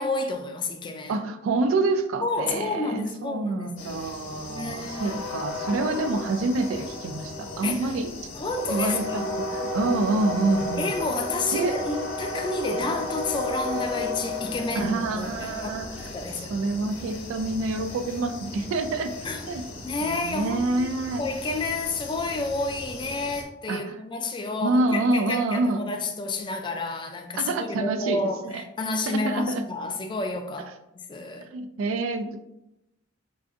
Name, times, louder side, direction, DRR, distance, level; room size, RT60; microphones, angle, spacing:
voice 1, 0.0-1.2 2.2-5.2 7.6-7.9 8.3-9.3 10.8-16.5 19.2-20.9 21.2-31.5, left 3 dB, 25° left, 0.3 m, -30 dB
voice 2, 1.1-8.1 8.7-10.9 11.5-11.8 14.7-19.2 19.5-19.6 20.0-21.2 23.7-24.0 24.6-25.8 27.4-28.6 29.1-29.7 31.5-32.4, right 3 dB, 70° right, 0.3 m, -27 dB
sound 1, 3.8-23.4, left 2 dB, 70° left, 0.8 m, -34 dB
4.7 x 2.4 x 2.5 m
head